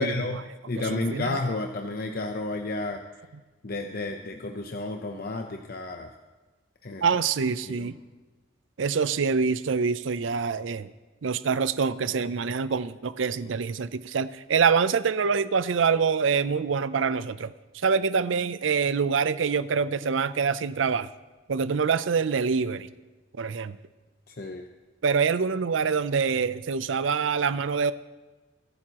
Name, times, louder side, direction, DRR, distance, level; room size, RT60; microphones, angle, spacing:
voice 1, 0.0-3.0 3.6-6.1 6.8-7.0 7.6-7.9 24.3-24.7, left 2 dB, 50° left, 4 dB, 0.7 m, -31 dB
voice 2, 0.9-1.4 7.0-8.0 8.8-10.9 11.2-17.5 17.8-21.1 21.5-22.9 23.4-23.8 25.0-27.9, right 5 dB, 75° right, 15 dB, 0.5 m, -25 dB
22.0 x 11.0 x 3.0 m, 1.2 s
head